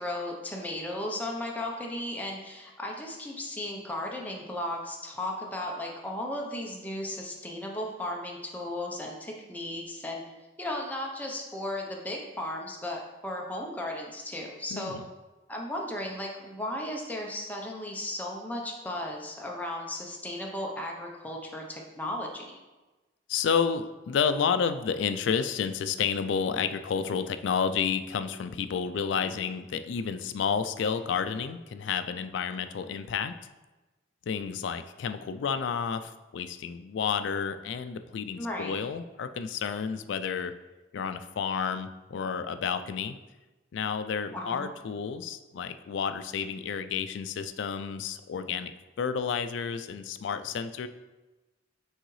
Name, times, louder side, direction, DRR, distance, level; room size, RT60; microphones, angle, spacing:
voice 1, 0.0-10.2 10.6-15.0 15.5-22.6 29.1-29.4 38.4-38.8 44.3-44.7, left 1 dB, 10° left, -1 dB, 0.7 m, -35 dB
voice 2, 14.7-15.1 23.3-33.3 34.3-40.5 40.9-43.2 43.7-48.7 49.0-50.9, left 6 dB, 75° left, 10 dB, 0.3 m, -30 dB
6.4 x 4.7 x 3.1 m, 1.1 s
head